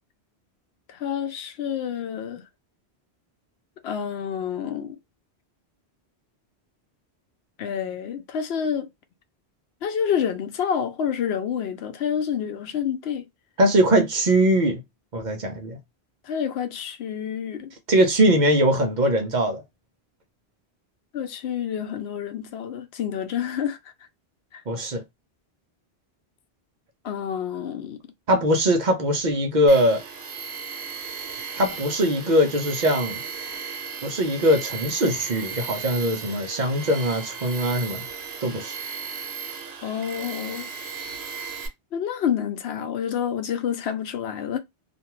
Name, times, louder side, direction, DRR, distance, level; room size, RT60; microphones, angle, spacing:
voice 1, 0.9-2.4 3.8-5.0 7.6-8.9 9.8-13.2 16.2-17.7 21.1-23.8 24.5-24.6 27.0-28.0 39.8-40.7 41.9-44.6, left 8 dB, 75° left, 0.8 m, -28 dB
voice 2, 13.6-14.8 15.1-15.8 17.9-19.6 24.7-25.0 28.3-30.0 31.6-33.2 34.0-38.0 38.4-38.8, equal, 50° right, 0.7 m, -21 dB
Tools, 29.7-41.7, right 6 dB, 75° right, 1.1 m, -36 dB
2.5 x 2.2 x 3.0 m
omnidirectional pair, 1.1 m